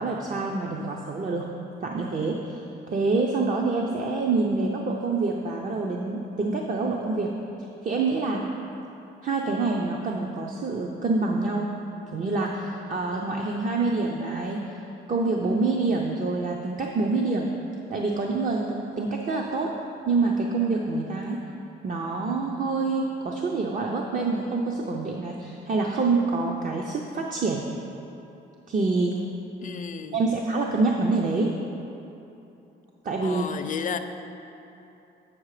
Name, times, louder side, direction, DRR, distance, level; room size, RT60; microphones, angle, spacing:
voice 1, 0.0-1.5 1.8-7.3 7.8-8.5 9.2-11.7 12.1-14.8 15.1-17.5 17.9-19.7 20.1-21.4 21.8-27.6 28.7-29.1 30.1-31.5 33.0-33.4, right 3 dB, 40° right, 0 dB, 0.7 m, -26 dB
voice 2, 29.6-30.3 33.2-34.0, left 7 dB, 40° left, 8 dB, 0.5 m, -33 dB
8.7 x 5.7 x 4.9 m, 2.9 s
cardioid pair, 90°, 20 cm